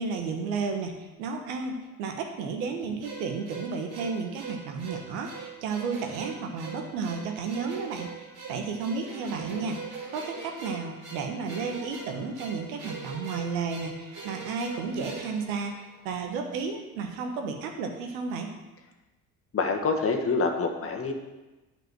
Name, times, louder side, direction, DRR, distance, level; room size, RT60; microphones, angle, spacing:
voice 1, 0.0-9.8 10.1-18.5, right 5 dB, 70° right, 4 dB, 1.4 m, -33 dB
sound 1, 3.0-16.3, right 5 dB, 45° right, 3.4 m, -42 dB
voice 2, 19.5-21.1, left 4 dB, 30° left, 3 dB, 1.5 m, -26 dB
9.1 x 5.1 x 6.2 m, 1.1 s
hypercardioid pair, 55°, 42 cm